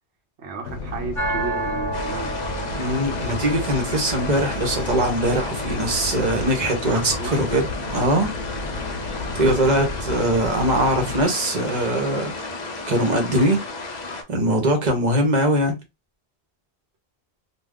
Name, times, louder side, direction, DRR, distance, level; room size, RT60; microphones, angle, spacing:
voice 1, 0.4-2.4 6.9-7.4, right 4 dB, 80° right, 0.9 m, -33 dB
sound 1, 0.6-11.2, left 3 dB, 85° left, 0.8 m, -33 dB
sound 2, 1.1-13.1, right 1 dB, 20° right, 1.3 m, -34 dB
sound 3, 1.9-14.2, left 3 dB, 50° left, 0.6 m, -34 dB
voice 2, 2.7-8.3 9.3-12.3 12.9-13.6 14.3-15.7, right 1 dB, 45° right, 0.9 m, -21 dB
2.3 x 2.3 x 3.5 m
omnidirectional pair, 1.1 m